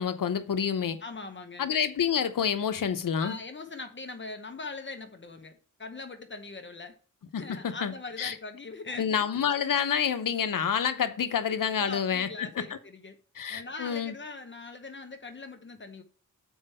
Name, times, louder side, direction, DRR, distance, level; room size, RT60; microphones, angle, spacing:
voice 1, 0.0-1.0 1.6-3.4 7.3-8.3 9.0-12.8 13.4-14.1, left 7 dB, 85° left, 0.8 m, -28 dB
voice 2, 1.0-1.7 3.2-6.9 7.3-9.5 11.8-13.2 13.5-16.0, left 3 dB, 35° left, 0.9 m, -41 dB
7.2 x 4.6 x 5.5 m
wide cardioid pair, 100°, 32 cm